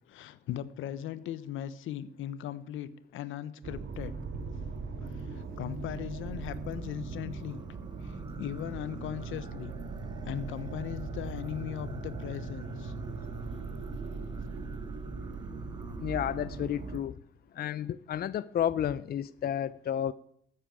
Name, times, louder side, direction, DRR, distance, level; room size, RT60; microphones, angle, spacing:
voice 1, 0.1-4.2 5.1-7.6 8.0-9.7 10.2-12.9, left 11 dB, 80° left, 15 dB, 1.0 m, -39 dB
sound 1, 3.6-17.0, right 3 dB, 65° right, 1.9 m, -39 dB
Singing, 6.4-17.1, right 4 dB, 20° right, 0.8 m, -51 dB
voice 2, 16.0-17.1 17.6-20.1, left 10 dB, 50° left, 16 dB, 0.5 m, -31 dB
13.5 x 8.6 x 9.0 m, 0.70 s
cardioid pair, 90°, 20 cm